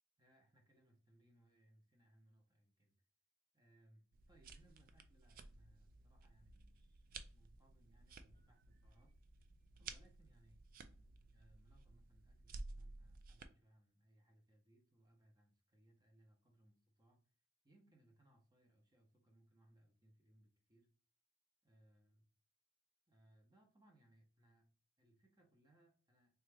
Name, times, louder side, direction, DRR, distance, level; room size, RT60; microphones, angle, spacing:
voice 1, 0.2-2.9 3.5-9.1 9.8-10.6 10.8-17.2 17.6-20.9 21.6-22.2 23.1-24.7 25.0-26.3, right 1 dB, 20° right, 2 dB, 0.7 m, -71 dB
sound 1, 4.1-13.5, right 3 dB, 40° right, 0.3 m, -55 dB
3.3 x 2.4 x 3.3 m, 0.40 s
head